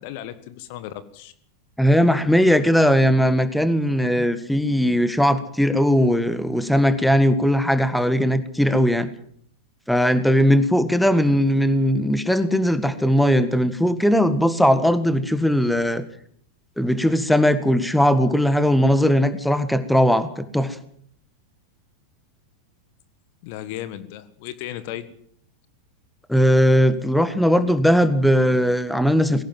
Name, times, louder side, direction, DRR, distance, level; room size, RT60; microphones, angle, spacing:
voice 1, 0.0-1.3 23.4-25.1, left 12 dB, 45° left, 13 dB, 1.6 m, -35 dB
voice 2, 1.8-9.1 9.9-16.0 16.8-20.8 26.3-29.4, equal, ahead, 12 dB, 1.7 m, -19 dB
20.5 x 17.5 x 7.7 m, 0.62 s
figure-of-eight pair, 90°, 0 cm